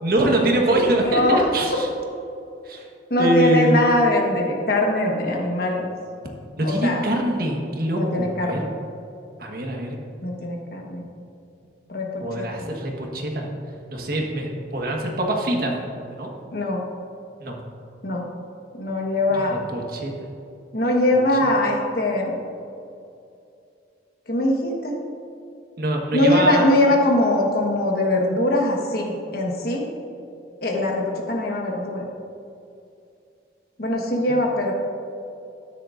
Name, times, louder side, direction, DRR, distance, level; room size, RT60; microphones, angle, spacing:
voice 1, 0.0-1.9 2.6-2.8 3.2-3.8 6.6-8.6 9.4-10.0 12.2-13.5 13.9-15.8 16.2-16.3 17.4-17.6 19.5-20.1 25.8-26.7, right 1 dB, 55° right, 0 dB, 1.4 m, -23 dB
voice 2, 1.0-1.4 3.1-5.9 6.6-7.1 7.9-8.7 10.2-11.0 11.9-12.6 16.5-16.8 18.0-18.3 18.8-19.6 20.7-22.4 24.3-24.9 26.1-29.8 30.6-32.0 33.8-34.7, left 1 dB, 55° left, 0 dB, 1.4 m, -22 dB
13.0 x 9.8 x 2.6 m, 2.6 s
head